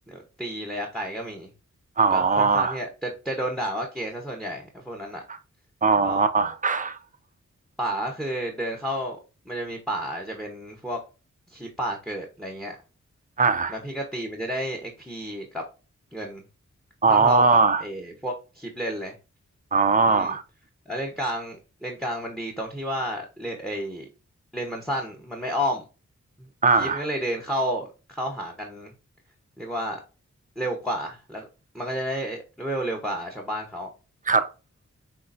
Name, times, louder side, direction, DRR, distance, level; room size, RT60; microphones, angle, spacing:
voice 1, 0.1-1.5 2.1-5.2 6.0-6.3 7.8-9.2 9.5-11.0 11.5-12.8 13.7-15.6 16.1-16.4 17.1-19.1 20.1-20.4 20.9-24.1 24.5-25.8 26.4-26.5 26.8-28.9 29.6-30.0 30.6-31.5 31.7-33.9, equal, ahead, 1.0 m, -31 dB
voice 2, 2.0-2.8 5.8-7.0 13.4-13.7 17.0-17.8 19.7-20.4 26.6-27.0 34.3-34.5, right 4 dB, 30° right, 0.5 m, -20 dB
5.6 x 3.2 x 2.6 m
cardioid pair, 60°, 29 cm